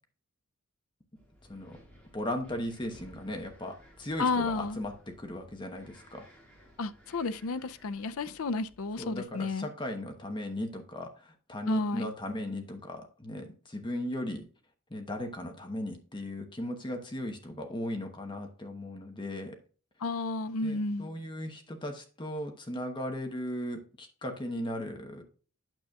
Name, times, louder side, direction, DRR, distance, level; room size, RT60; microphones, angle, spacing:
Wind, 1.2-9.3, equal, 5° left, 2.3 m, -57 dB
voice 1, 2.1-6.3 9.0-14.5 14.9-19.6 20.6-25.2, left 1 dB, 20° left, 1.0 m, -37 dB
voice 2, 4.2-4.8 6.8-9.7 11.7-12.1 20.0-21.1, left 3 dB, 75° left, 0.5 m, -32 dB
9.0 x 6.9 x 2.4 m
head